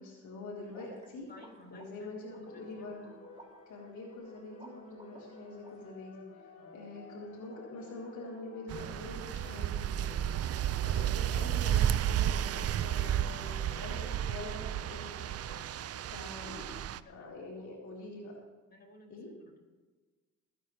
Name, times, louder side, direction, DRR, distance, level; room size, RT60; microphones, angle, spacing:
voice 1, 0.0-1.3 1.7-3.2 3.7-6.2 6.7-10.3 10.8-15.8 16.1-16.7 17.1-18.4 19.1-19.3, left 2 dB, 70° left, -4 dB, 3.9 m, -45 dB
sound 1, 0.7-5.7, right 2 dB, 20° right, 3.0 m, -57 dB
voice 2, 1.3-2.9 6.5-6.8 10.4-10.9 12.3-12.4 16.9-17.3 18.7-19.6, left 2 dB, 30° left, -2 dB, 4.7 m, -57 dB
sound 2, 2.5-16.8, left 3 dB, 50° left, 2.0 m, -56 dB
sound 3, 8.7-17.0, right 10 dB, 55° right, 0.5 m, -32 dB
23.0 x 9.2 x 3.3 m, 1.3 s
cardioid pair, 90°, 30 cm